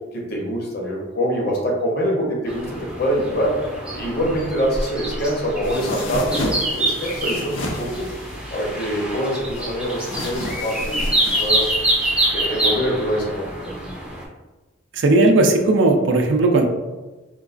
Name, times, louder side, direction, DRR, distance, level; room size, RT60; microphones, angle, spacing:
voice 1, 0.1-3.6 3.9-8.1 8.5-11.7 12.3-13.9, equal, 55° left, -1 dB, 0.8 m, -25 dB
sound 1, 2.5-14.2, right 1 dB, 5° right, 0.4 m, -26 dB
sound 2, 5.6-12.3, left 1 dB, 85° left, 0.5 m, -32 dB
voice 2, 14.9-16.6, right 2 dB, 70° right, 4 dB, 0.4 m, -16 dB
3.8 x 2.3 x 2.4 m, 1.2 s
head